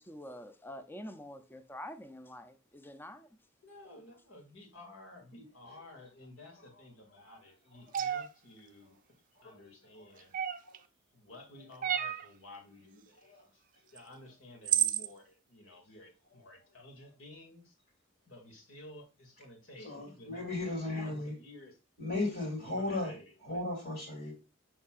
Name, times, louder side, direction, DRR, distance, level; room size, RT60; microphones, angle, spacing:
voice 1, 0.0-3.3, left 1 dB, 10° left, 0.5 m, -46 dB
voice 2, 3.6-9.0 9.4-10.3 11.1-13.6 13.9-17.8 18.3-20.5 20.9-21.8 22.6-23.6, left 1 dB, 70° left, 2.3 m, -53 dB
sound 1, 7.9-8.3 10.3-10.8 11.8-12.3 14.0-14.1 14.7-15.1, right 10 dB, 40° right, 0.5 m, -30 dB
voice 3, 9.4-9.7 10.0-10.1 10.6-10.8 11.7-11.8 13.3-13.4 19.8-21.3 22.0-24.4, left 2 dB, 50° left, 2.8 m, -36 dB
6.9 x 5.7 x 2.5 m
head